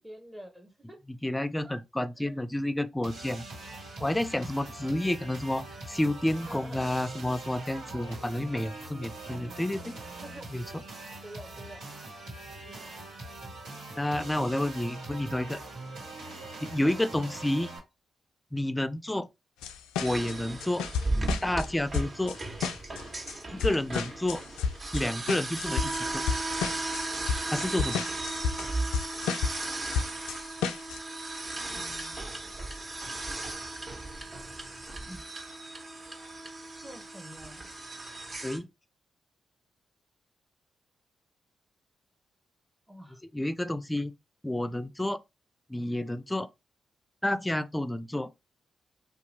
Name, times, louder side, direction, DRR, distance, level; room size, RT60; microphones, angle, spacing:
voice 1, 0.0-1.0 1.6-1.8 2.2-2.4 4.9-5.1 6.3-6.9 10.2-10.5 11.2-11.8 12.6-13.1 16.8-17.1 31.7-32.2 35.1-35.3 36.8-37.7 42.9-43.2, right 1 dB, 15° right, 1.0 m, -47 dB
voice 2, 1.1-3.5 4.0-10.0 10.5-10.8 14.0-15.6 16.6-17.7 18.5-19.3 20.0-20.9 21.4-22.4 23.5-24.4 24.9-26.2 27.5-28.0 38.4-38.7 43.3-44.1 44.4-45.2 45.7-46.5 47.2-48.3, left 1 dB, 15° left, 0.5 m, -30 dB
sound 1, 3.0-17.8, right 2 dB, 80° right, 1.5 m, -42 dB
sound 2, 19.6-21.7 21.9-31.0, left 6 dB, 80° left, 0.3 m, -32 dB
sound 3, 20.0-38.6, right 2 dB, 40° right, 1.5 m, -36 dB
2.8 x 2.3 x 4.1 m
hypercardioid pair, 40°, 0 cm